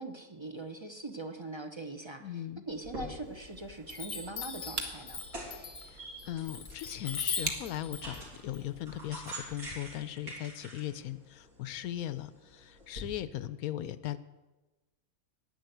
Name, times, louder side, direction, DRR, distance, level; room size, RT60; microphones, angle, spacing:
voice 1, 0.0-5.2, right 2 dB, 25° right, 6 dB, 0.7 m, -42 dB
voice 2, 2.2-2.6 5.8-14.2, left 12 dB, 85° left, 15 dB, 1.1 m, -38 dB
sound 1, 2.7-13.0, right 1 dB, 75° right, 3.9 m, -47 dB
Chime, 2.9-3.5 3.9-9.8, left 5 dB, 35° left, 1.0 m, -40 dB
sound 2, 3.2-10.0, right 3 dB, 45° right, 1.4 m, -45 dB
10.5 x 9.6 x 7.9 m, 1.1 s
omnidirectional pair, 1.5 m